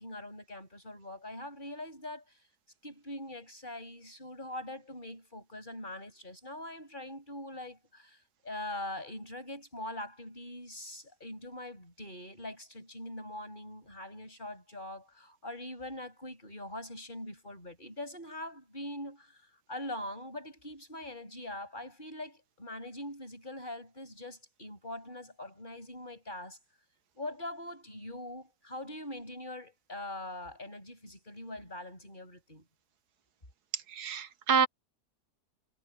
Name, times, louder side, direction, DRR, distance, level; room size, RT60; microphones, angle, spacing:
voice 1, 0.0-2.2 2.8-19.4 19.7-26.6 27.1-32.6, left 1 dB, 30° left, 8.4 m, -43 dB
voice 2, 33.7-34.7, right 6 dB, 80° right, 1.6 m, -28 dB
omnidirectional pair, 1.7 m